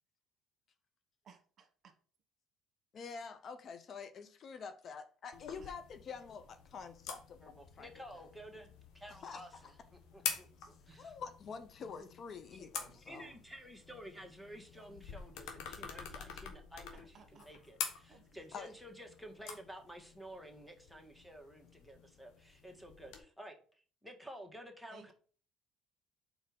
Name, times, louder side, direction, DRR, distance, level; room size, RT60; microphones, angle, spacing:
voice 1, 1.2-1.9 5.6-5.7 12.8-13.4 17.1-17.5 18.1-18.2 24.9-25.1, right 5 dB, 50° right, 1.3 m, -60 dB
voice 2, 2.9-7.9 8.2-8.3 9.2-9.7 10.6-13.3 18.5-18.7, left 5 dB, 50° left, 0.7 m, -47 dB
sound 1, 5.3-23.2, left 7 dB, 75° left, 1.2 m, -47 dB
voice 3, 7.4-10.5 10.9-11.1 12.0-12.1 12.5-12.7 12.9-23.5 24.0-25.1, equal, ahead, 1.7 m, -52 dB
4.5 x 4.4 x 5.3 m
supercardioid pair, 70°, 0 cm